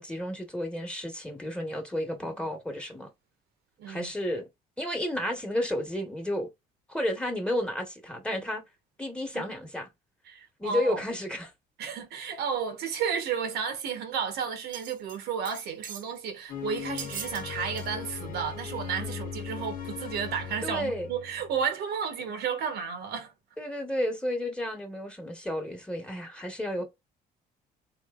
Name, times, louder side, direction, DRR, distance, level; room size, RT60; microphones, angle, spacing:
voice 1, 0.0-3.1 3.9-4.4 4.8-6.5 6.9-8.6 9.0-9.9 10.6-11.5 19.0-19.2 20.6-21.1 23.6-26.8, left 1 dB, 5° left, 1.2 m, -32 dB
voice 2, 3.8-4.1 9.3-9.5 10.3-11.0 11.8-23.3, right 7 dB, 75° right, 1.0 m, -32 dB
sound 1, 14.7-15.2 15.5-16.1 17.0-17.4 17.8-17.9 18.4-18.5, right 7 dB, 50° right, 0.8 m, -40 dB
sound 2, 16.5-21.7, left 7 dB, 55° left, 0.9 m, -39 dB
3.9 x 3.0 x 2.4 m
cardioid pair, 110°, 17 cm